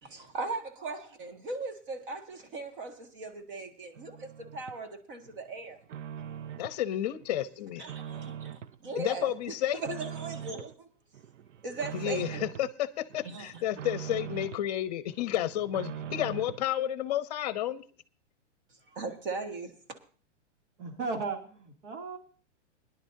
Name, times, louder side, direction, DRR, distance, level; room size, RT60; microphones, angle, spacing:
voice 1, 0.0-5.8 7.8-10.9 11.6-12.4 13.2-13.6 18.9-19.7, right 3 dB, 45° right, 2.0 m, -39 dB
sound 1, 4.0-4.8 5.2-6.8 7.2-8.8 9.2-10.7 11.1-12.7 13.1-14.7 15.1-16.7, right 9 dB, 85° right, 0.7 m, -42 dB
voice 2, 6.6-7.8 9.0-10.0 11.9-17.8, left 12 dB, 35° left, 0.8 m, -31 dB
voice 3, 20.8-22.2, right 4 dB, 70° right, 2.9 m, -36 dB
22.0 x 10.5 x 2.7 m
hypercardioid pair, 170°, 36 cm